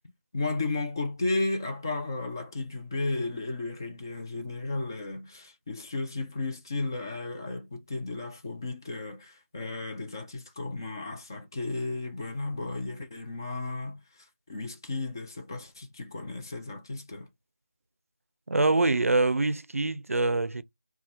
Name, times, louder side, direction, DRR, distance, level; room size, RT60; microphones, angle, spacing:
voice 1, 0.3-17.3, left 2 dB, 15° left, 0.4 m, -34 dB
voice 2, 18.5-20.6, right 2 dB, 85° right, 0.5 m, -24 dB
2.9 x 2.2 x 4.0 m
figure-of-eight pair, 170°, 7 cm